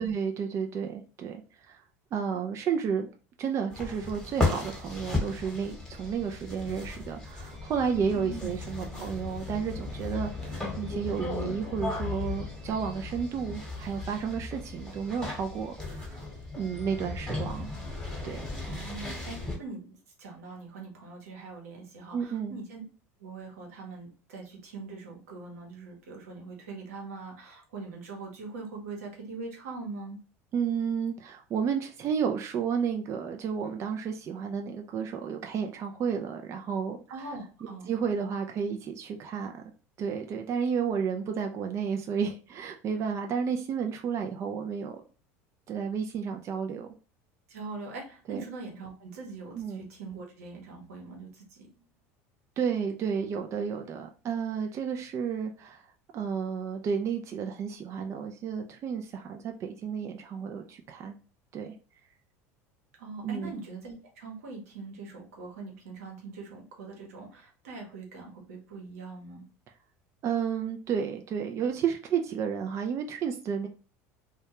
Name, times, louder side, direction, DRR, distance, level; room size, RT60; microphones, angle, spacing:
voice 1, 0.0-1.8 2.1-3.1 3.4-16.2 16.6-17.7 18.2-18.4 22.1-22.6 30.5-37.0 37.9-39.6 40.0-45.0 45.7-46.9 48.3-48.4 49.5-49.8 52.6-55.9 56.1-61.2 61.5-61.7 63.2-63.5 70.2-73.7, right 6 dB, 40° right, 4 dB, 0.4 m, -32 dB
sound 1, 3.7-19.6, left 3 dB, 5° left, 1.1 m, -36 dB
voice 2, 8.1-8.6 8.9-9.0 18.6-22.8 23.2-30.2 37.1-38.0 47.5-51.9 63.0-69.4, right 3 dB, 90° right, 0 dB, 0.9 m, -42 dB
2.2 x 2.2 x 2.8 m, 0.37 s
supercardioid pair, 95°, 8 cm